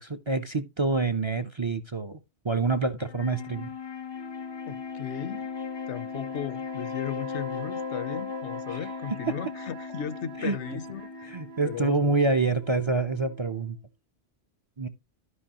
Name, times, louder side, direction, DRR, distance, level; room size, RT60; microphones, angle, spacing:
voice 1, 0.0-2.2 2.4-3.7 8.7-8.8 10.4-10.6 11.3-13.8 14.8-14.9, right 3 dB, 35° right, 0.5 m, -27 dB
Wind instrument woodwind instrument, 3.0-12.5, left 6 dB, 40° left, 0.4 m, -37 dB
sound 1, 4.1-13.8, right 8 dB, 65° right, 0.9 m, -46 dB
voice 2, 4.7-5.5 5.9-11.3 11.6-12.2, left 9 dB, 80° left, 1.0 m, -36 dB
13.0 x 5.4 x 2.8 m
omnidirectional pair, 1.1 m